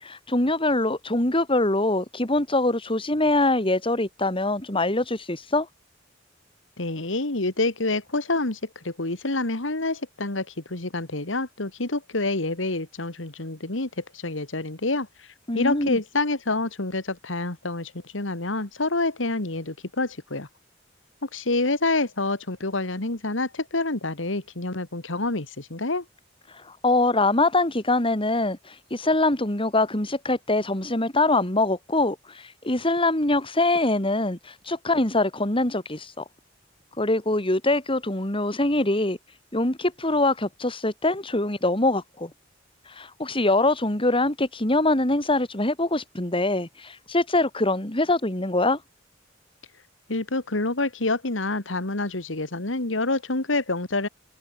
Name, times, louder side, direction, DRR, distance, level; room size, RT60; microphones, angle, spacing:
voice 1, 0.0-5.7 15.5-16.0 26.5-36.2 37.0-39.2 39.5-42.3 42.9-48.8, left 2 dB, 30° left, 3.8 m, -23 dB
voice 2, 6.8-15.3 15.5-20.5 21.2-26.0 50.1-54.1, left 2 dB, 80° left, 2.3 m, -27 dB
head